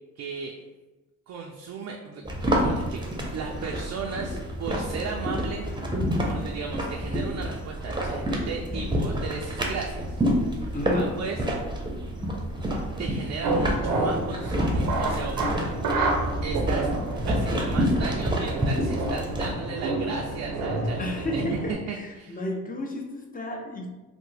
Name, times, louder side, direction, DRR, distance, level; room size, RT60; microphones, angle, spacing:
voice 1, 0.2-0.5 1.3-5.7 6.2-10.2 10.5-11.4 13.0-15.6 16.4-21.1 21.3-22.4, right 5 dB, 55° right, 1 dB, 0.4 m, -36 dB
sound 1, 2.2-19.5, equal, 15° right, 0.7 m, -28 dB
voice 2, 10.7-11.2 21.0-23.9, left 1 dB, 25° left, 1 dB, 0.6 m, -32 dB
sound 2, 13.4-21.7, right 2 dB, 85° right, 0.7 m, -29 dB
3.3 x 2.1 x 3.2 m, 1.1 s
cardioid pair, 65°, 33 cm